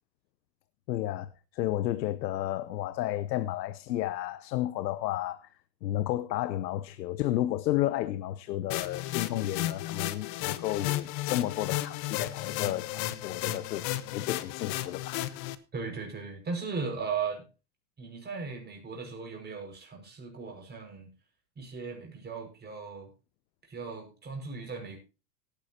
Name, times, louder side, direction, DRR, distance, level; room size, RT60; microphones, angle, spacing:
voice 1, 0.9-5.5 5.8-13.8 14.1-15.4, left 14 dB, 85° left, 0.9 m, -32 dB
sound 1, 8.7-15.5, left 15 dB, 50° left, 1.2 m, -34 dB
voice 2, 15.7-17.4 18.0-21.1 21.6-23.1 23.7-25.0, right 5 dB, 20° right, 5.7 m, -37 dB
17.5 x 9.6 x 2.9 m
supercardioid pair, 125°, 50 cm